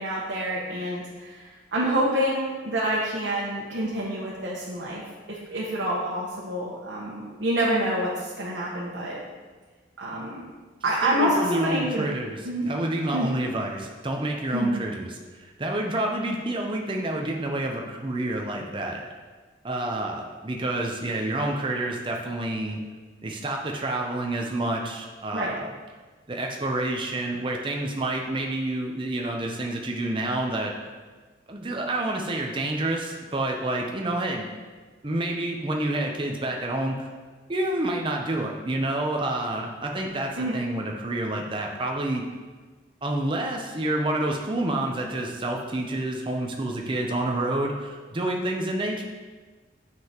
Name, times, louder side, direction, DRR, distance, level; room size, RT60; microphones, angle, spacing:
voice 1, 0.0-5.0 5.3-9.2 10.0-10.4 10.8-12.1 12.4-12.7 13.1-13.3 14.5-14.7 25.3-25.5 40.4-40.6, right 1 dB, 90° right, -5 dB, 1.1 m, -27 dB
voice 2, 11.0-19.0 19.6-22.8 23.2-25.7 26.3-30.7 31.5-34.5 35.0-37.1 37.5-42.3 43.0-49.0, right 1 dB, 25° right, 1 dB, 0.6 m, -28 dB
7.6 x 6.0 x 2.9 m, 1.4 s
head